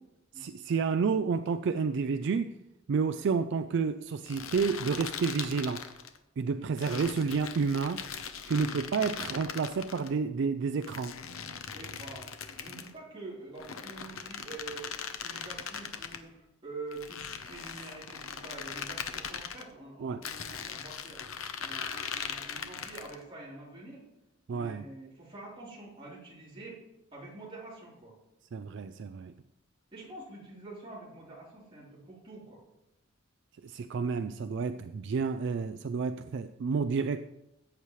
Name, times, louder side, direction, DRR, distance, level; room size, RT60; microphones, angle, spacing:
voice 1, 0.4-2.6 2.9-5.8 6.4-8.0 8.4-11.1 20.0-20.2 24.5-24.8 28.5-29.3 33.6-37.2, right 5 dB, 60° right, 11 dB, 0.4 m, -30 dB
sound 1, 4.3-6.2 6.8-10.1 10.8-12.9 13.6-16.2 16.9-19.6 20.2-23.2, left 7 dB, 90° left, 0.8 m, -40 dB
voice 2, 11.7-21.2 21.6-24.0 24.5-26.8 27.1-28.2 29.9-32.6, right 2 dB, 25° right, -6 dB, 3.5 m, -46 dB
16.5 x 8.3 x 3.2 m, 0.91 s
head